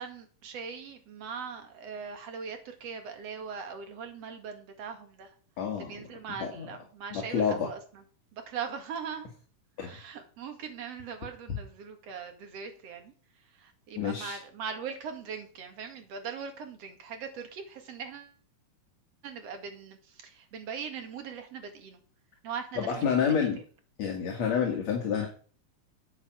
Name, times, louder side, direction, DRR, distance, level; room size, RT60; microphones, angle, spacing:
voice 1, 0.0-5.3 5.8-8.0 8.3-9.3 9.8-13.1 13.5-18.3 19.2-22.0 22.4-23.3, right 6 dB, 50° right, 6 dB, 2.6 m, -40 dB
voice 2, 5.6-6.0 6.4-6.7 7.1-7.7 9.8-10.0 14.0-14.4 22.8-23.6 24.0-25.3, left 7 dB, 55° left, 1 dB, 2.7 m, -28 dB
9.1 x 8.5 x 6.0 m, 0.42 s
omnidirectional pair, 4.0 m